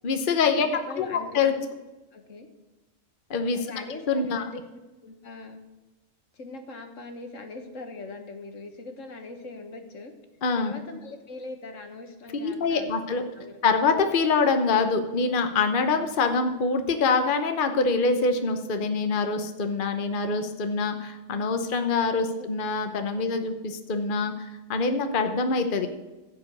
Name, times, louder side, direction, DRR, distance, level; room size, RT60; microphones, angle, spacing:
voice 1, 0.0-0.7 1.0-1.5 3.3-3.6 4.1-4.4 10.4-10.7 12.4-13.2 13.6-25.9, left 4 dB, 45° left, 7 dB, 1.1 m, -25 dB
voice 2, 0.6-1.7 2.1-2.5 3.5-4.6 5.0-5.6 6.3-10.1 10.5-13.6 22.3-22.5 22.7-22.9 23.2-23.3 25.8-26.0, left 3 dB, 75° left, 6 dB, 1.7 m, -41 dB
15.0 x 5.3 x 8.4 m, 1.1 s
omnidirectional pair, 1.3 m